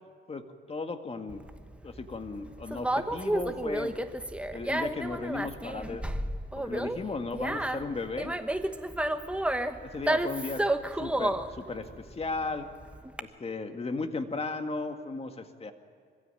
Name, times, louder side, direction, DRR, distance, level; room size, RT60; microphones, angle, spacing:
voice 1, 0.3-1.4 1.8-4.0 4.5-6.1 6.6-8.3 9.8-10.6 11.0-12.7 13.2-15.7, left 3 dB, 30° left, 6 dB, 2.0 m, -35 dB
Conversation, 1.3-13.2, right 1 dB, 5° right, 1.2 m, -31 dB
24.5 x 16.0 x 9.0 m, 2.1 s
cardioid pair, 90°, 20 cm